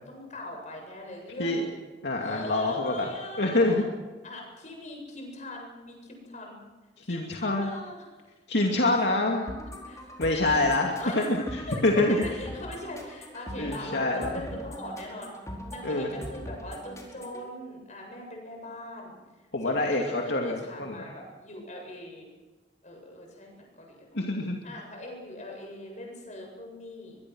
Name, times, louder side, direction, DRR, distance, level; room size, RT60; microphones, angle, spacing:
voice 1, 0.1-1.7 2.2-3.9 4.2-6.6 7.0-8.0 8.9-9.0 9.9-10.2 11.0-11.8 12.1-15.3 15.7-19.2 19.6-22.3 22.8-24.2 24.6-27.2, left 1 dB, 45° left, 1 dB, 7.8 m, -41 dB
voice 2, 2.0-3.1 3.4-3.8 7.0-7.7 8.5-9.6 10.2-11.4 11.8-12.2 13.6-14.4 15.8-16.1 19.5-21.1 24.1-24.6, left 2 dB, 75° left, 0 dB, 2.5 m, -26 dB
sound 1, 9.5-17.5, equal, 20° left, 4.7 m, -41 dB
23.0 x 23.0 x 6.3 m, 1.2 s
head